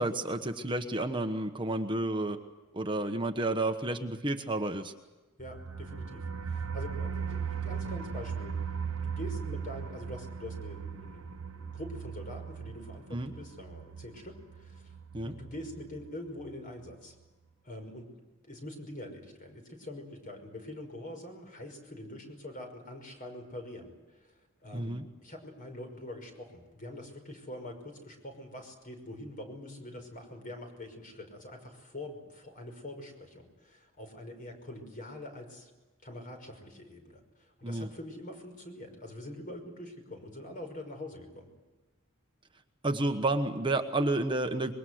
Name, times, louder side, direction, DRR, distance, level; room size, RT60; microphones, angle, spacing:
voice 1, 0.0-2.4 2.7-4.9 13.1-13.3 15.1-15.3 24.7-25.0 37.6-37.9 42.8-44.7, right 2 dB, 25° right, 5 dB, 1.2 m, -30 dB
voice 2, 5.4-14.9 15.2-17.1 17.6-18.1 18.5-24.3 24.6-35.7 36.0-41.5, left 1 dB, 40° left, 5 dB, 5.7 m, -44 dB
sound 1, 5.4-16.1 16.4-16.5 16.9-17.0, right 6 dB, 85° right, 0.9 m, -38 dB
25.5 x 22.5 x 7.9 m, 1.2 s
head